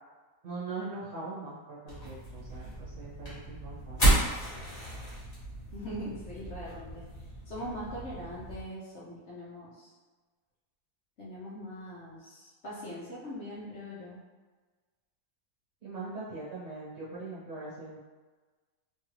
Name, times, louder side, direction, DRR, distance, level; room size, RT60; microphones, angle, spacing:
voice 1, 0.4-4.2 15.8-18.0, right 3 dB, 55° right, -8 dB, 1.5 m, -41 dB
sound 1, 1.9-8.6, right 1 dB, 25° left, 1.3 m, -32 dB
voice 2, 5.7-7.0 7.5-9.9 11.2-14.2, equal, 55° left, -7 dB, 1.0 m, -41 dB
3.4 x 2.3 x 3.1 m, 1.3 s
omnidirectional pair, 1.6 m